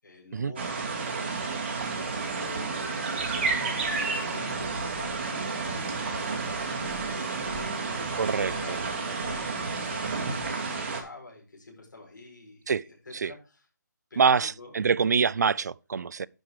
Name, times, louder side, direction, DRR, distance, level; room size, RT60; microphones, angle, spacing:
voice 1, 0.0-6.4 7.0-9.4 9.8-13.6 14.1-14.7, left 2 dB, 80° left, 5.5 m, -46 dB
sound 1, 0.6-11.0, right 4 dB, 35° right, 2.2 m, -31 dB
sound 2, 3.2-10.5, left 2 dB, 35° left, 2.3 m, -45 dB
voice 2, 8.2-8.8 12.7-12.8 13.1-13.3 14.2-16.3, right 6 dB, 65° right, 0.4 m, -25 dB
10.5 x 5.9 x 4.8 m
hypercardioid pair, 170°, 10 cm